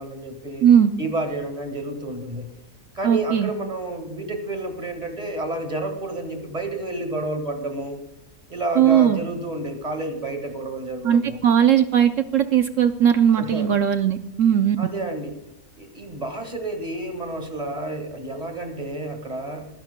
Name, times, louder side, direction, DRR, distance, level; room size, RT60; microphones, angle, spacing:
voice 1, 0.0-0.6 1.0-2.5 2.9-8.0 8.5-11.4 13.4-13.7 14.8-15.3 15.8-19.7, right 2 dB, 25° right, 5 dB, 1.7 m, -30 dB
voice 2, 0.6-0.9 3.0-3.5 8.8-9.2 11.0-14.8, right 9 dB, 65° right, 9 dB, 0.9 m, -18 dB
25.5 x 10.5 x 2.2 m, 0.86 s
omnidirectional pair, 1.6 m